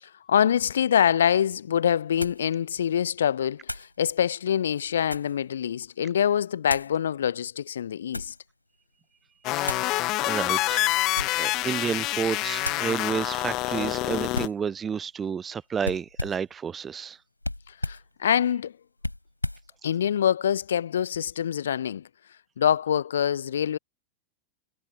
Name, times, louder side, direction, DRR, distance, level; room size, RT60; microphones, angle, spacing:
voice 1, 0.0-8.3 17.8-18.7 19.8-22.1 22.6-23.8, left 9 dB, 65° left, 0.9 m, -25 dB
sound 1, 1.1-1.2 2.2-2.5 3.6-3.9 4.7-5.4 6.6-7.0 7.7-8.4 9.6-9.9 11.0-11.5 11.9-12.2 12.6-12.9 14.3-14.6 15.8-16.5 17.4-18.1 19.0-19.7, left 1 dB, 85° left, 4.1 m, -34 dB
sound 2, 9.4-14.5, left 20 dB, 40° left, 1.1 m, -27 dB
voice 2, 9.6-10.0 10.2-17.2, right 7 dB, 20° right, 0.6 m, -31 dB
figure-of-eight pair, 90°, 0 cm